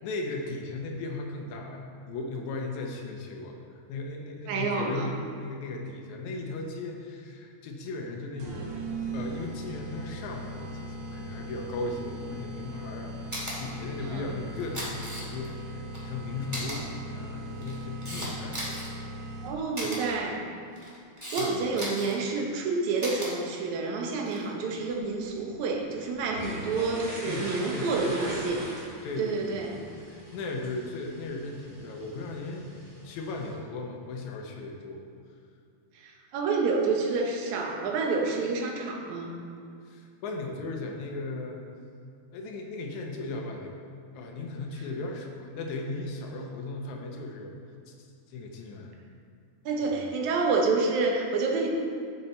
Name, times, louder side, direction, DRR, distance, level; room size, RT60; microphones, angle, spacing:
voice 1, 0.0-18.9 19.8-20.0 21.2-21.8 27.2-28.2 29.0-32.7 33.0-35.0 39.9-41.6 42.3-47.5 47.9-49.0 49.8-50.0, left 2 dB, 80° left, 2 dB, 2.3 m, -37 dB
voice 2, 4.5-5.1 14.1-14.3 19.4-20.4 21.3-28.7 29.2-29.7 36.0-39.3 49.7-51.7, right 4 dB, 80° right, 0 dB, 2.4 m, -28 dB
sound 1, 8.4-19.8, right 1 dB, 60° right, 1.7 m, -39 dB
Camera, 13.3-13.5 14.5-15.5 15.9-16.0 16.5-16.8 17.5-18.9 19.7-20.0 20.7-21.4 21.7-22.2 23.0-23.3 24.2-24.4, equal, 10° right, 1.7 m, -36 dB
sound 2, 24.7-33.5, right 1 dB, 35° right, 2.7 m, -42 dB
9.7 x 6.7 x 4.3 m, 2.4 s
omnidirectional pair, 3.3 m